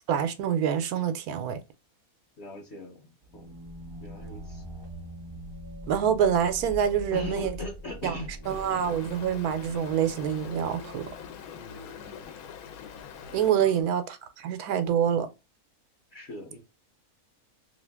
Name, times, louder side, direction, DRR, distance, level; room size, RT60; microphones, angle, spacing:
voice 1, 0.1-1.6 5.9-7.5 8.0-8.2 8.5-11.0 13.3-15.3, right 8 dB, 90° right, 1.1 m, -26 dB
voice 2, 2.4-3.6 4.0-4.6 7.1-8.8 11.5-12.4 13.6-13.9 16.1-16.6, left 1 dB, 50° left, 1.0 m, -40 dB
sound 1, 3.2-11.8, equal, 45° right, 0.3 m, -43 dB
Stream, 8.4-13.5, left 8 dB, 80° left, 1.1 m, -44 dB
2.8 x 2.5 x 3.4 m
omnidirectional pair, 1.6 m